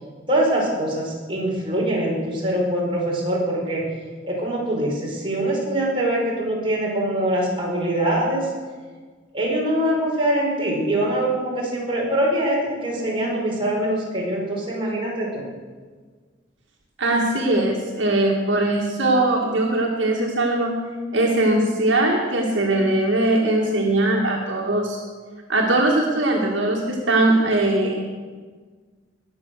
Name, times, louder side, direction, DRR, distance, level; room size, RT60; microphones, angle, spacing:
voice 1, 0.3-3.9 4.2-8.5 9.3-15.4, right 1 dB, 30° right, -4 dB, 4.7 m, -23 dB
voice 2, 17.0-20.8 21.1-25.0 25.5-28.0, right 2 dB, 75° right, -1 dB, 1.9 m, -20 dB
20.5 x 7.1 x 6.5 m, 1.5 s
head